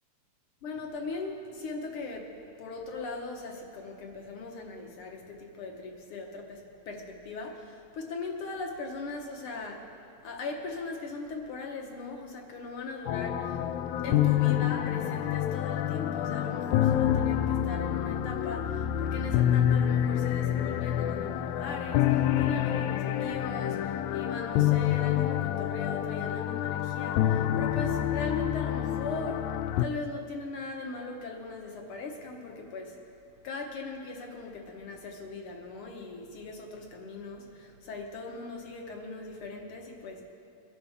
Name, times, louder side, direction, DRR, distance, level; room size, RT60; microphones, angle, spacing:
voice 1, 0.6-9.9 10.2-13.6 14.0-29.5 29.8-33.0 33.4-40.2, left 3 dB, 60° left, 1.7 m, -39 dB
sound 1, 13.1-29.9, left 11 dB, 85° left, 1.9 m, -27 dB
22.0 x 11.0 x 3.5 m
omnidirectional pair, 3.3 m